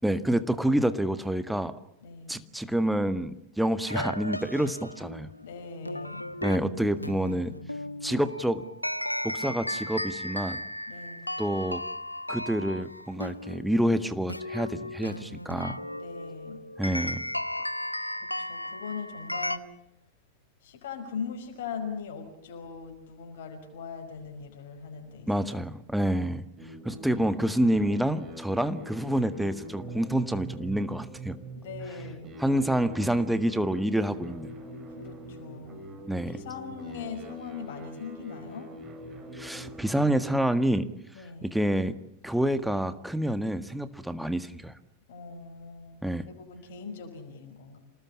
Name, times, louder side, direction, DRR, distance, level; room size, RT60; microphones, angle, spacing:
voice 1, 0.0-1.7 2.3-5.3 6.4-7.5 8.0-8.6 9.2-10.6 11.4-11.8 12.3-15.8 16.8-17.2 25.3-26.4 26.8-31.4 32.4-34.5 36.1-36.4 39.3-40.9 41.4-41.9 42.2-44.7 46.0-46.3, right 1 dB, ahead, 11 dB, 1.7 m, -27 dB
voice 2, 2.0-2.4 5.4-6.3 10.9-11.4 15.9-16.7 18.2-19.8 20.6-25.5 26.9-27.2 31.6-32.9 34.9-35.9 36.3-38.7 41.1-41.6 45.1-47.8, left 5 dB, 55° left, 4 dB, 5.4 m, -41 dB
sound 1, 3.9-19.6, left 1 dB, 85° left, 0.9 m, -36 dB
sound 2, 26.6-40.3, right 1 dB, 25° right, 6.5 m, -43 dB
27.5 x 19.5 x 8.8 m, 0.82 s
figure-of-eight pair, 90°, 0 cm